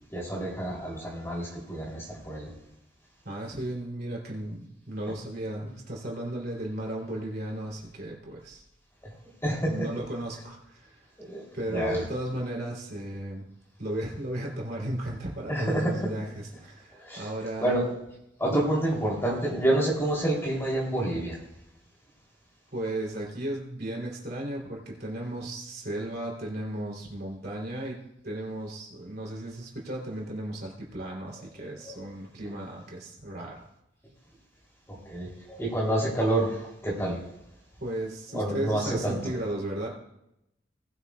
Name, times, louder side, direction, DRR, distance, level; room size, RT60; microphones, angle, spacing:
voice 1, 0.1-2.5 9.4-9.9 11.3-12.0 15.5-16.1 17.0-17.3 17.6-17.8 18.4-21.4 31.3-32.0 35.0-37.2 38.3-39.2, right 1 dB, 15° left, -4 dB, 3.3 m, -28 dB
voice 2, 3.2-8.6 9.6-11.0 11.5-13.5 13.8-17.8 22.7-33.6 37.8-39.9, right 1 dB, 55° right, -2 dB, 3.3 m, -35 dB
19.5 x 9.5 x 2.4 m, 0.83 s
head